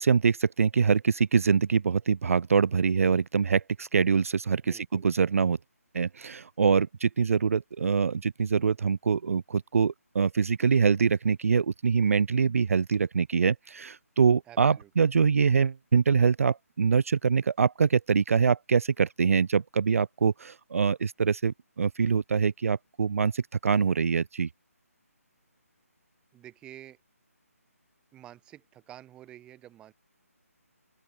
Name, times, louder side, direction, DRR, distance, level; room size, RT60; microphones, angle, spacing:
voice 1, 0.0-5.6 5.9-24.5, right 6 dB, 65° right, 0.3 m, -24 dB
voice 2, 4.6-5.1 14.4-14.9 26.3-27.0 28.1-29.9, right 12 dB, 10° right, 4.2 m, -49 dB
open air
figure-of-eight pair, 160°, 8 cm